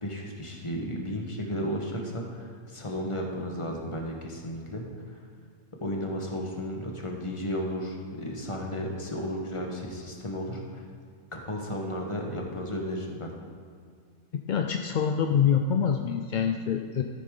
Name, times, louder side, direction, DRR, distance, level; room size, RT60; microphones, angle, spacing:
voice 1, 0.0-5.2 5.8-10.8 11.3-13.3, equal, 25° left, 0 dB, 1.3 m, -34 dB
voice 2, 14.5-17.0, left 7 dB, 55° left, 4 dB, 0.5 m, -25 dB
14.0 x 8.3 x 3.8 m, 2.2 s
omnidirectional pair, 1.3 m